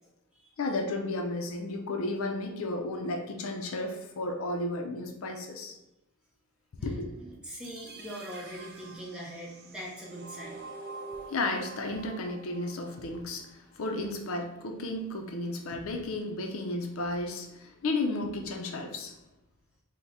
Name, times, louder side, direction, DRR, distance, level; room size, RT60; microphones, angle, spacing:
voice 1, 0.6-5.8 6.8-7.1 11.3-19.2, left 2 dB, 65° left, 3 dB, 0.5 m, -33 dB
voice 2, 6.8-10.7, equal, 5° right, -5 dB, 0.8 m, -42 dB
sound 1, 7.5-13.5, right 3 dB, 45° right, 0.4 m, -46 dB
3.5 x 2.1 x 4.0 m, 0.96 s
head